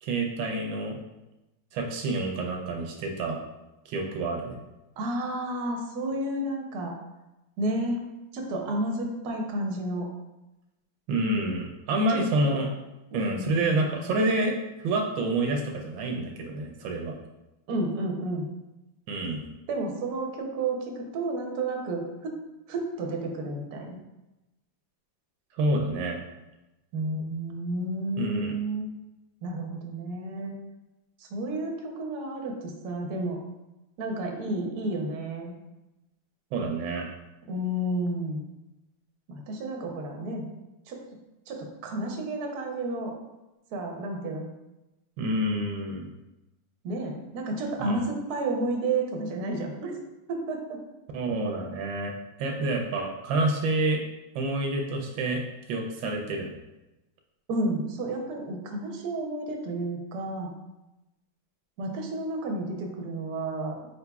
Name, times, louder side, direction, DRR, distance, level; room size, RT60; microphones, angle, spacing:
voice 1, 0.0-1.0 1.7-3.4 3.9-4.6 11.1-12.7 13.1-17.2 19.1-19.5 25.6-26.2 28.2-28.5 36.5-37.1 45.2-46.1 47.8-48.0 51.1-52.1 52.4-54.0 54.3-55.4 55.7-56.6, right 2 dB, 80° right, 1 dB, 1.3 m, -28 dB
voice 2, 5.0-6.9 7.6-8.0 8.3-10.1 12.1-12.2 13.1-13.9 17.7-18.5 19.7-22.3 22.7-24.0 26.9-28.9 29.4-30.5 31.2-33.4 34.0-35.5 37.5-38.4 39.3-40.5 40.9-41.0 41.5-43.1 43.7-44.5 46.8-49.9 50.3-50.8 57.5-60.5 61.8-63.9, right 2 dB, 65° right, 1 dB, 1.1 m, -31 dB
4.6 x 3.9 x 2.3 m, 0.99 s
omnidirectional pair, 2.1 m